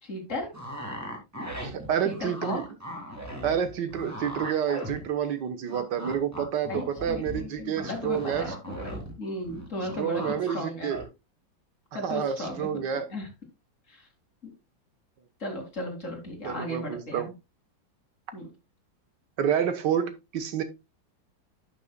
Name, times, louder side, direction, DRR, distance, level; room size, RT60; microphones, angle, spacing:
voice 1, 0.0-0.5 2.0-2.6 6.7-10.9 11.9-13.3 13.9-14.1 14.4-14.5 15.4-17.3 18.3-18.5, left 1 dB, 40° left, 2.7 m, -36 dB
sound 1, 0.5-5.4 5.7-9.1 9.4-10.5 10.9-11.0, equal, 10° right, 2.2 m, -38 dB
voice 2, 1.6-2.6 3.4-8.5 10.0-11.0 12.0-13.1 16.4-17.3 19.4-20.6, right 8 dB, 65° right, 1.7 m, -29 dB
11.0 x 6.8 x 2.3 m
omnidirectional pair, 2.1 m